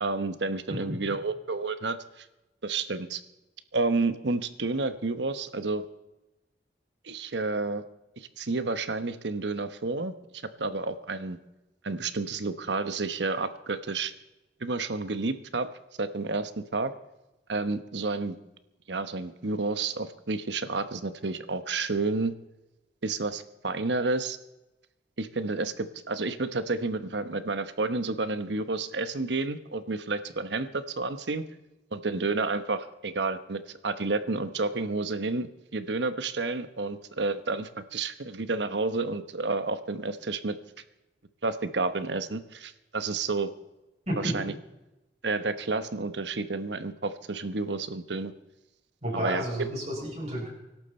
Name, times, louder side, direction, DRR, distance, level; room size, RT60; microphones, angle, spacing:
voice 1, 0.0-2.2 2.6-3.2 3.7-5.9 7.0-7.8 8.2-10.1 10.6-11.4 11.8-14.1 14.6-15.7 16.0-16.9 17.5-18.4 18.9-22.3 23.0-24.4 25.2-31.4 31.9-40.6 41.4-43.5 44.2-44.5 45.2-48.3 49.1-49.7, right 3 dB, 90° right, 11 dB, 1.1 m, -30 dB
voice 2, 49.0-50.5, equal, 40° right, -5 dB, 6.9 m, -31 dB
24.0 x 12.0 x 4.4 m, 1.0 s
head